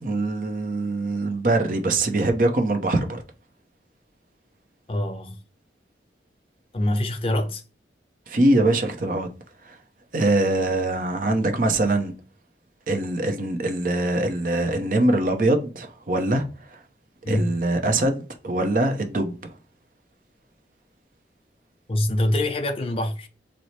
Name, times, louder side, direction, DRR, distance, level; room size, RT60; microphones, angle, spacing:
voice 1, 0.0-3.2 8.3-9.3 9.6-9.8 10.1-12.1 12.9-16.8 17.3-19.5, right 2 dB, 45° right, 0.6 m, -23 dB
voice 2, 4.9-5.4 6.7-7.6 17.2-17.5 21.9-23.3, left 1 dB, 30° left, 0.5 m, -24 dB
4.1 x 2.0 x 3.1 m
head